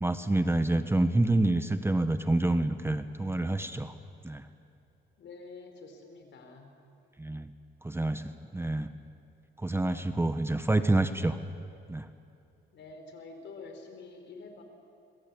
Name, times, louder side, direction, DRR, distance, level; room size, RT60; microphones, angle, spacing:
voice 1, 0.0-3.9 4.2-4.5 7.2-7.5 7.8-8.9 9.6-11.4 11.9-12.1, right 2 dB, 10° right, 10 dB, 1.1 m, -27 dB
voice 2, 5.2-6.7 12.7-14.6, left 3 dB, 65° left, 5 dB, 4.8 m, -47 dB
25.5 x 22.0 x 8.6 m, 2.7 s
cardioid pair, 90°, 20 cm